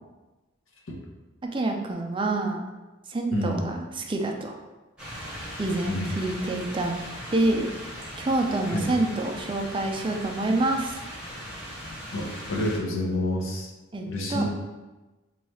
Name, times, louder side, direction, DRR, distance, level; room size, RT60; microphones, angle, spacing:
voice 1, 1.4-2.6 3.1-4.6 5.6-7.0 7.3-7.7 8.2-11.0 13.9-14.4, right 2 dB, 25° right, 3 dB, 0.4 m, -27 dB
voice 2, 3.3-3.7 5.9-6.1 8.7-8.9 12.1-13.7 14.0-14.4, left 1 dB, 80° left, -1 dB, 0.7 m, -28 dB
sound 1, 5.0-12.8, equal, 5° right, 0.8 m, -39 dB
3.1 x 2.4 x 4.2 m, 1.1 s
head